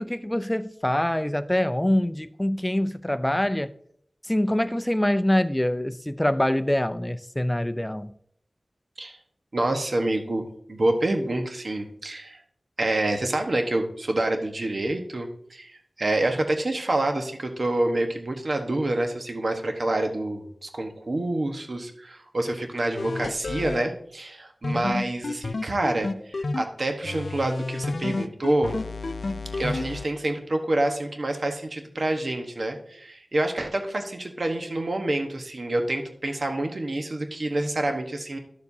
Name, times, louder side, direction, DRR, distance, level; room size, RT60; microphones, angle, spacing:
voice 1, 0.0-3.7 4.2-8.1, left 1 dB, 15° left, 0.5 m, -25 dB
voice 2, 9.5-12.4 12.8-28.8 29.6-38.4, right 1 dB, 60° right, 1.2 m, -27 dB
sound 1, 23.0-23.8 24.6-26.6 27.0-30.1, left 3 dB, 80° left, 0.4 m, -30 dB
11.5 x 7.1 x 2.7 m
wide cardioid pair, 60°, 0 cm